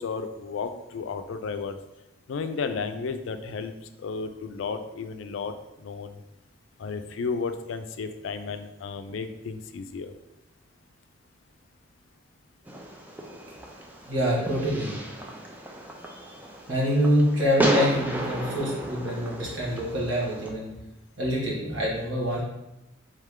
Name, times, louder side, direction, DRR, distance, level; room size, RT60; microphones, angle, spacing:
voice 1, 0.0-1.8 2.3-3.7 4.0-5.5 5.8-6.2 6.8-10.1, left 5 dB, 85° left, 9 dB, 0.4 m, -33 dB
Fireworks, 12.7-20.5, right 1 dB, 10° right, 0.4 m, -33 dB
voice 2, 14.1-14.9 16.7-20.7 21.2-22.4, equal, 85° right, -5 dB, 1.5 m, -25 dB
3.6 x 3.3 x 3.6 m, 0.93 s
head